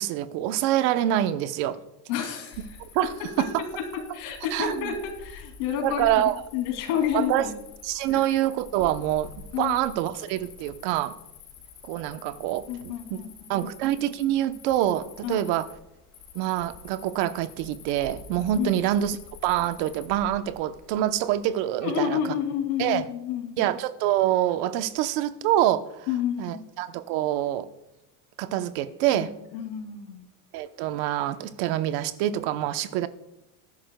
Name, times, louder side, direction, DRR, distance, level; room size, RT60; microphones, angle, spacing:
voice 1, 0.0-1.8 2.9-3.1 3.4-3.6 4.5-4.9 5.8-6.4 7.1-7.5 7.8-9.3 9.6-11.2 11.8-13.2 13.5-15.7 16.3-22.2 22.8-23.1 23.6-26.1 26.4-27.7 28.4-29.3 30.5-33.1, right 12 dB, 60° right, 11 dB, 0.9 m, -26 dB
voice 2, 2.1-2.7 3.4-3.5 3.9-6.2 6.5-7.5 8.1-8.3 9.5-9.8 12.7-13.3 13.6-13.7 15.2-15.4 18.5-18.7 21.8-23.7 26.1-26.7 29.1-30.3, left 9 dB, 75° left, 4 dB, 3.0 m, -30 dB
Cricket, 2.5-21.4, left 5 dB, 50° left, 2.7 m, -48 dB
20.5 x 11.5 x 2.3 m, 0.87 s
supercardioid pair, 135°, 44 cm